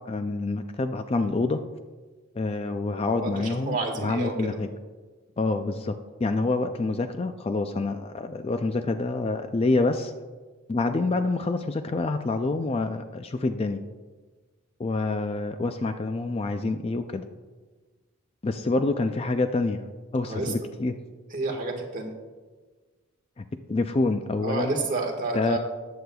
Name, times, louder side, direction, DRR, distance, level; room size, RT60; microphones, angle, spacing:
voice 1, 0.1-1.6 2.4-4.7 5.4-10.1 10.7-13.8 14.8-17.2 18.4-19.8 20.1-21.0 23.4-24.8 25.3-25.6, left 3 dB, 25° left, 8 dB, 0.3 m, -27 dB
voice 2, 3.1-4.3 18.6-18.7 20.3-20.5 21.3-22.1 24.4-25.6, right 3 dB, 35° right, 1 dB, 1.6 m, -30 dB
14.0 x 9.4 x 2.3 m, 1.3 s
head